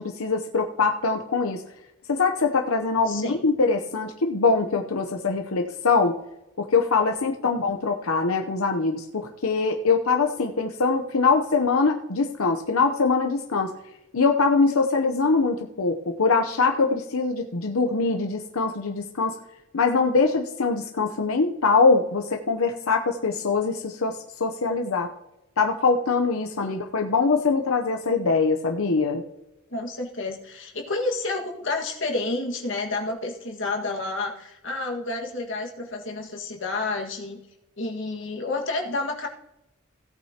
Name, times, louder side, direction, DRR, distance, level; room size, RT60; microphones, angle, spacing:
voice 1, 0.0-1.6 2.1-6.1 6.6-13.7 14.1-19.4 19.7-25.1 25.6-29.2, left 4 dB, 85° left, 3 dB, 0.8 m, -23 dB
voice 2, 3.1-3.4 26.6-26.7 29.7-37.4 37.8-39.3, left 2 dB, 60° left, 1 dB, 1.8 m, -30 dB
17.0 x 8.9 x 2.9 m, 0.91 s
head